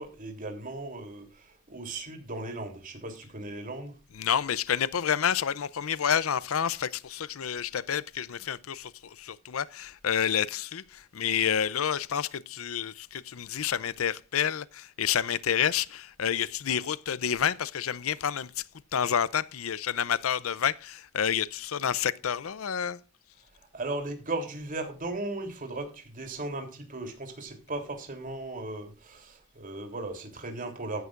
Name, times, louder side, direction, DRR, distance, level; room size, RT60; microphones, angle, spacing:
voice 1, 0.0-3.9 23.7-31.0, right 2 dB, 40° right, 3.2 m, -37 dB
voice 2, 4.2-18.5 18.9-23.0, left 8 dB, 80° left, 0.6 m, -29 dB
15.0 x 11.0 x 2.5 m
head